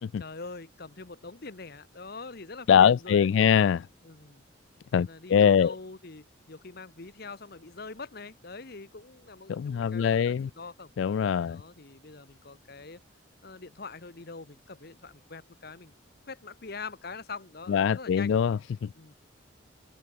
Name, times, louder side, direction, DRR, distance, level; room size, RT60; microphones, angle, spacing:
voice 1, 0.0-3.6 4.0-4.4 4.9-10.9 11.5-13.0 13.4-15.9 16.2-18.4 18.9-19.1, left 4 dB, 50° left, 1.1 m, -43 dB
voice 2, 2.7-3.8 4.9-5.7 9.5-10.5 11.0-11.6 17.7-18.9, left 8 dB, 70° left, 0.3 m, -23 dB
open air
head